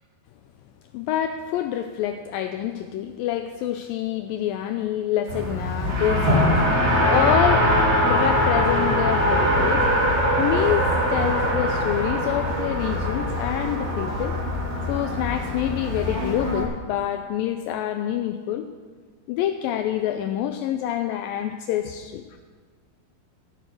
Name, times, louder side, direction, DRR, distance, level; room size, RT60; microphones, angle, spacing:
voice 1, 0.9-6.7 7.0-9.9 10.4-14.4 14.9-18.7 19.3-22.2, left 11 dB, 85° left, 8 dB, 2.1 m, -27 dB
Race car auto racing, 5.3-16.6, equal, 35° right, 1.0 m, -22 dB
14.5 x 8.9 x 6.3 m, 1.5 s
omnidirectional pair, 4.5 m